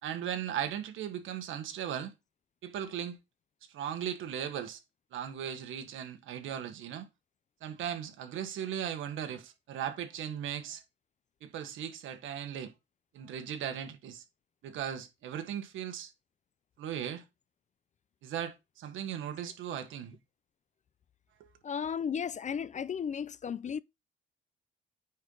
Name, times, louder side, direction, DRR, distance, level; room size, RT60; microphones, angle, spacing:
voice 1, 0.0-2.1 2.6-3.2 3.7-4.8 5.1-7.1 7.6-10.8 11.4-12.7 13.1-14.2 14.6-16.1 16.8-17.2 18.2-20.2 21.4-21.5, right 9 dB, 80° right, 1.5 m, -37 dB
voice 2, 21.6-23.8, left 7 dB, 40° left, 0.5 m, -34 dB
9.5 x 4.5 x 3.8 m
cardioid pair, 90°, 20 cm